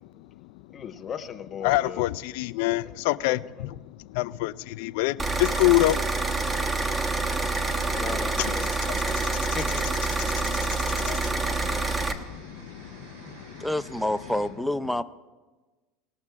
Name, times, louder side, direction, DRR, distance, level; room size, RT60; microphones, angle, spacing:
voice 1, 0.7-2.0 2.8-3.7 7.8-8.7 9.4-9.9 10.7-10.9, left 7 dB, 35° left, 0.8 m, -38 dB
voice 2, 1.6-3.7 4.1-6.0 6.3-6.4 7.5-7.9 9.1-9.6 10.3-13.7, left 18 dB, 70° left, 0.3 m, -28 dB
sound 1, 5.2-12.1, right 3 dB, 20° right, 1.1 m, -27 dB
sound 2, 7.6-14.5, equal, 85° right, 2.4 m, -47 dB
voice 3, 13.6-15.0, left 1 dB, ahead, 0.5 m, -27 dB
19.0 x 6.5 x 4.7 m
hypercardioid pair, 85°, 0 cm